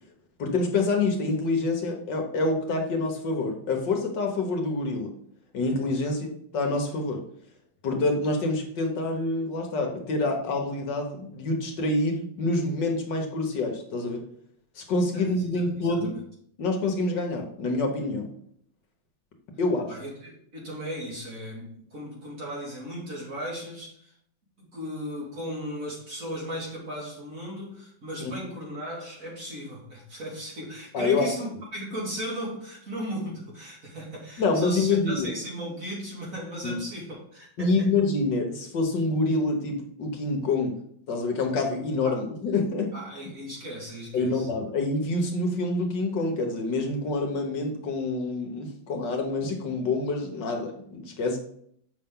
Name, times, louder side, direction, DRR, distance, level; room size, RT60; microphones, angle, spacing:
voice 1, 0.4-5.1 5.5-7.2 7.8-14.2 14.8-16.1 16.6-18.3 19.6-19.9 28.2-28.3 30.9-31.3 34.4-35.3 36.6-36.8 37.6-40.8 41.1-43.0 44.1-51.4, left 3 dB, 65° left, 3 dB, 1.7 m, -27 dB
voice 2, 15.1-16.0 19.9-24.1 24.6-37.9 42.0-42.2 42.9-44.5, equal, 45° right, -4 dB, 2.7 m, -36 dB
7.3 x 5.7 x 3.7 m, 0.66 s
omnidirectional pair, 2.1 m